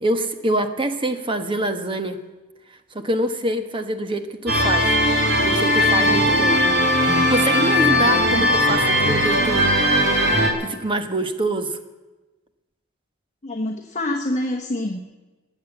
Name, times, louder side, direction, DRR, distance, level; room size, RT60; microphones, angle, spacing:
voice 1, 0.0-2.2 2.9-5.0 5.4-6.6 7.3-9.7 10.0-10.1 10.6-11.8, right 1 dB, 25° right, 8 dB, 1.1 m, -25 dB
sound 1, 4.5-10.5, left 1 dB, 60° right, 2.8 m, -18 dB
voice 2, 13.4-15.0, left 1 dB, 35° left, 3 dB, 1.1 m, -26 dB
19.5 x 7.3 x 9.2 m, 1.2 s
head